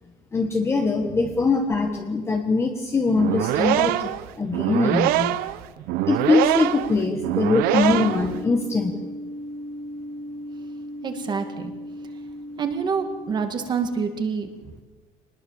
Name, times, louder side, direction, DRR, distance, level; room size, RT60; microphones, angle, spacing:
voice 1, 0.3-4.1 4.4-5.3 6.1-9.1, left 4 dB, 15° left, 3 dB, 1.5 m, -22 dB
voice 2, 1.0-1.4 3.7-3.8 11.0-11.7 12.6-14.8, right 5 dB, 30° right, 7 dB, 2.1 m, -28 dB
sound 1, 3.1-8.4, right 15 dB, 70° right, 0.9 m, -23 dB
sound 2, 6.7-13.4, equal, 50° right, 4.3 m, -36 dB
25.5 x 20.0 x 7.2 m, 1.3 s
cardioid pair, 170°, 16 cm